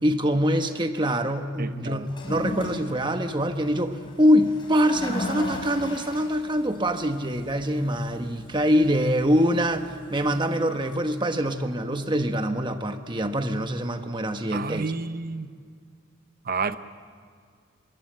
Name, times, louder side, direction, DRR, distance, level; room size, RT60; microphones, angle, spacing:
voice 1, 0.0-14.9, equal, 25° right, 1.2 m, -24 dB
voice 2, 1.6-2.1 14.5-15.5 16.4-16.8, right 4 dB, 45° right, 0.9 m, -30 dB
Toilet flush, 2.0-11.3, left 1 dB, 25° left, 5.7 m, -38 dB
25.5 x 22.0 x 7.8 m
head